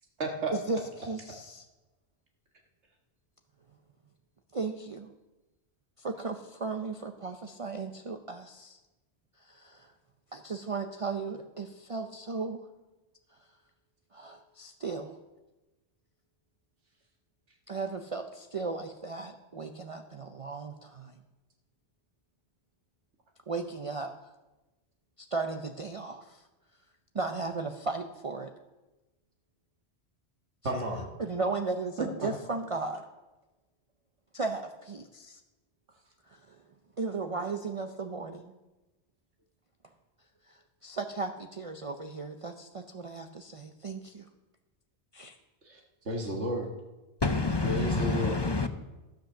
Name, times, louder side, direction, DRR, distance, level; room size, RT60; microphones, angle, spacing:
voice 1, 0.2-0.5 30.6-31.1 32.0-32.3 46.1-46.7 47.6-48.4, right 1 dB, 80° right, 0 dB, 1.8 m, -31 dB
voice 2, 1.0-1.6 4.5-5.1 6.0-8.8 9.5-9.8 10.3-12.6 14.1-15.2 17.7-21.1 23.5-24.1 25.3-26.2 27.1-28.5 31.2-33.0 34.3-35.4 37.0-38.5 40.8-44.2 45.1-45.3, right 4 dB, 40° right, 5 dB, 0.6 m, -35 dB
voice 3, 47.2-48.7, left 3 dB, 30° left, 9 dB, 0.5 m, -28 dB
13.0 x 7.8 x 6.4 m, 1.1 s
omnidirectional pair, 1.2 m